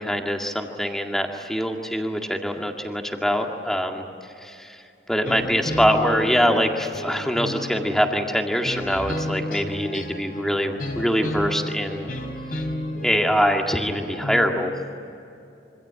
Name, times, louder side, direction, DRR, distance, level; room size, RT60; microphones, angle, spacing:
voice 1, 0.0-4.1 4.4-4.8 5.1-12.1 13.0-14.7, equal, ahead, 2 dB, 2.0 m, -23 dB
sound 1, 5.2-14.6, left 1 dB, 50° left, 3.3 m, -32 dB
26.5 x 25.5 x 8.8 m, 2.8 s
head